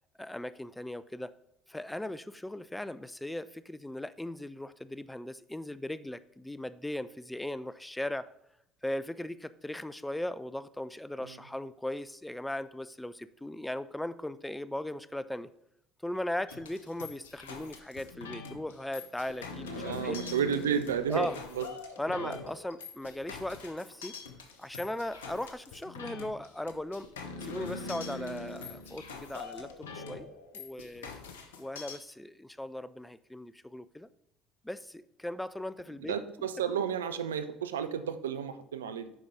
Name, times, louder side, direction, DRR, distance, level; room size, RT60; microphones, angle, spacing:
voice 1, 0.2-1.3 1.7-8.3 8.8-15.5 16.0-20.2 21.1-21.4 22.0-24.2 24.6-27.1 27.4-30.3 30.5-31.1 31.6-34.1 34.6-36.5, left 1 dB, 5° left, 15 dB, 0.3 m, -38 dB
sound 1, 16.5-32.0, left 3 dB, 75° left, 0.7 m, -43 dB
voice 2, 19.7-21.3 21.6-21.7 22.2-22.3 36.1-39.1, right 8 dB, 75° right, 10 dB, 0.4 m, -32 dB
7.8 x 5.3 x 3.7 m, 0.79 s
figure-of-eight pair, 60°, 0 cm